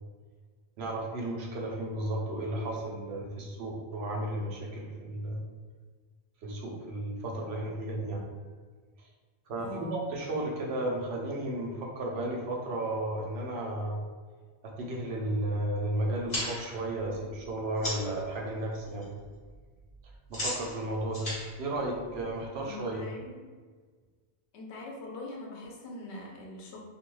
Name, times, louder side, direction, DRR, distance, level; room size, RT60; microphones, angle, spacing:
voice 1, 0.8-5.4 6.4-8.3 9.5-14.0 14.8-19.1 20.3-21.3 21.6-23.0, right 1 dB, 80° right, -1 dB, 0.9 m, -33 dB
voice 2, 9.6-10.0 22.6-23.5 24.5-26.8, left 1 dB, 85° left, -1 dB, 0.9 m, -43 dB
sound 1, 16.2-18.2 18.6-19.1 19.3-22.6, left 1 dB, 40° left, 1.3 m, -38 dB
2.6 x 2.2 x 3.0 m, 1.5 s
omnidirectional pair, 1.1 m